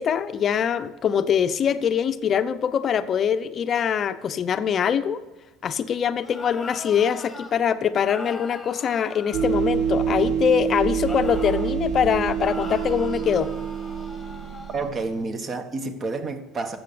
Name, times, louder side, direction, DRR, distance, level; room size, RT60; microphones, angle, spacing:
voice 1, 0.0-5.2 5.6-13.5, left 8 dB, 35° left, 11 dB, 0.7 m, -23 dB
sound 1, 6.2-7.5 8.1-10.3 11.0-11.8 12.4-14.9, left 2 dB, 10° left, 1.5 m, -41 dB
sound 2, 9.3-15.2, right 8 dB, 55° right, 1.3 m, -27 dB
voice 2, 14.7-16.8, right 3 dB, 30° right, 8 dB, 1.4 m, -29 dB
13.0 x 7.9 x 6.9 m, 1.1 s
cardioid pair, 145°, 0 cm